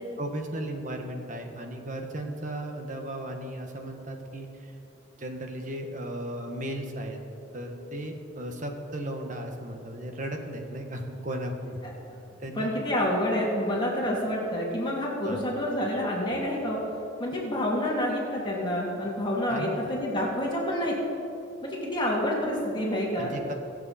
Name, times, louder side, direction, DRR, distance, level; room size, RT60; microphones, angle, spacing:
voice 1, 0.2-4.7 5.1-7.2 7.5-11.8 12.4-12.7 15.2-15.4 19.5-19.8 23.2-23.5, right 1 dB, 40° right, 3 dB, 1.5 m, -35 dB
voice 2, 12.5-16.8 17.2-21.0 21.6-23.3, left 1 dB, 25° left, -4 dB, 2.7 m, -28 dB
23.5 x 8.0 x 4.3 m, 2.8 s
head